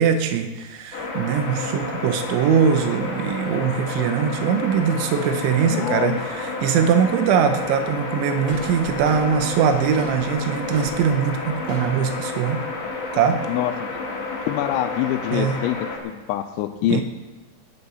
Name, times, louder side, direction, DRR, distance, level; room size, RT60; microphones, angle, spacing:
voice 1, 0.0-12.6 13.1-13.4 15.3-15.6 16.9-17.0, right 7 dB, 90° right, 6 dB, 3.3 m, -21 dB
sound 1, 0.9-16.0, left 3 dB, 50° left, 3.2 m, -30 dB
voice 2, 5.7-6.2 13.5-13.7 14.5-15.8 16.0-17.0, left 12 dB, 85° left, 5 dB, 3.0 m, -24 dB
sound 2, 8.4-13.4, right 1 dB, 25° right, 5.5 m, -40 dB
20.0 x 7.8 x 5.5 m, 1.2 s
omnidirectional pair, 5.2 m